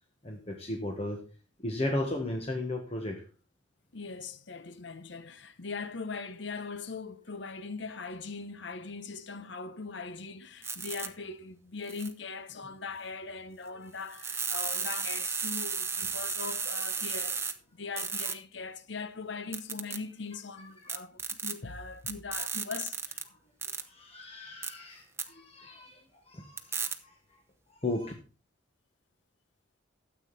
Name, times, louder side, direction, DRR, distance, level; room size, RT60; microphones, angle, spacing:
voice 1, 0.2-1.2 1.6-3.2 20.5-20.9 23.7-27.2 27.8-28.1, left 1 dB, 30° left, 1.4 m, -36 dB
voice 2, 3.9-23.2, left 4 dB, 70° left, 0.9 m, -40 dB
sound 1, 10.6-11.1 11.9-12.1 14.1-17.5 18.0-18.3 19.5-20.0 20.9-21.5 22.1-23.2 23.6-23.8 24.6-24.7 25.2-25.3 26.6-26.9, right 5 dB, 15° right, 0.9 m, -33 dB
13.0 x 8.1 x 4.2 m
head